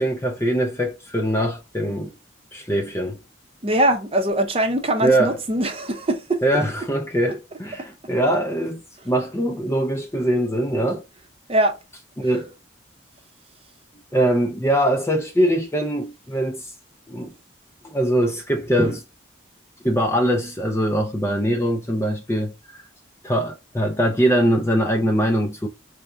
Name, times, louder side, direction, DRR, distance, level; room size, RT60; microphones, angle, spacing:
voice 1, 0.0-2.1 2.5-3.2 5.0-5.4 6.4-11.0 12.2-12.5 14.1-16.7 17.1-17.3 17.8-19.0 19.8-22.8 23.2-25.7, right 1 dB, 15° left, 0.4 m, -22 dB
voice 2, 3.6-6.4 11.5-11.8, right 1 dB, 30° right, 0.6 m, -21 dB
4.7 x 2.1 x 2.5 m
head